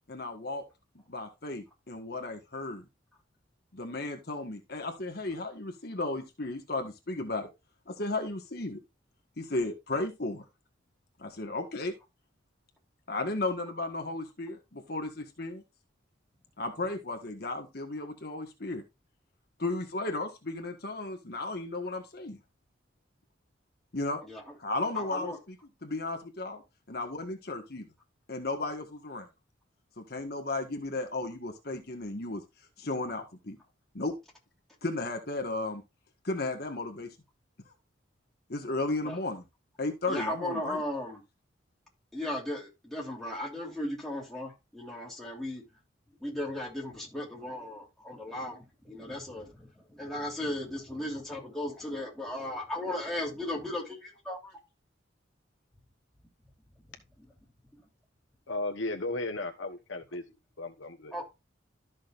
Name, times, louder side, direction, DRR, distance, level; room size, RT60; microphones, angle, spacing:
voice 1, 0.1-0.6 1.1-2.9 3.7-7.5 7.9-8.8 9.4-10.4 11.2-11.9 13.1-15.6 16.6-18.8 19.6-22.4 23.9-24.2 24.6-25.5 25.8-27.9 28.3-29.3 30.0-32.4 32.8-33.6 33.9-34.1 34.8-35.8 36.2-37.1 37.7-37.8 38.5-39.4 39.8-40.8, left 2 dB, 55° left, 1.5 m, -34 dB
voice 2, 24.9-25.4 39.0-39.2 40.1-41.2 42.1-45.6 46.2-54.6 57.2-57.3 57.7-57.8 61.1-61.3, left 1 dB, ahead, 3.3 m, -36 dB
voice 3, 58.5-60.2 60.6-61.1, left 2 dB, 80° left, 1.1 m, -35 dB
13.0 x 6.3 x 2.5 m
head